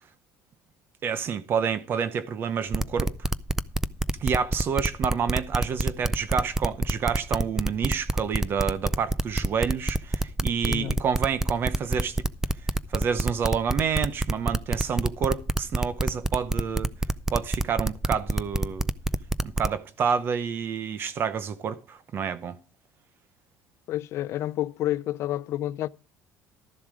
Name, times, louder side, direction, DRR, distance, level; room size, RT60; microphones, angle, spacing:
voice 1, 1.0-3.3 4.2-12.3 12.9-16.9 17.3-18.9 19.4-22.6, right 6 dB, 40° right, 0.8 m, -28 dB
sound 1, 2.7-19.7, right 2 dB, 10° right, 0.4 m, -26 dB
voice 2, 10.6-11.0 23.9-25.9, left 13 dB, 50° left, 0.5 m, -29 dB
13.0 x 7.2 x 4.9 m
cardioid pair, 145°, 6 cm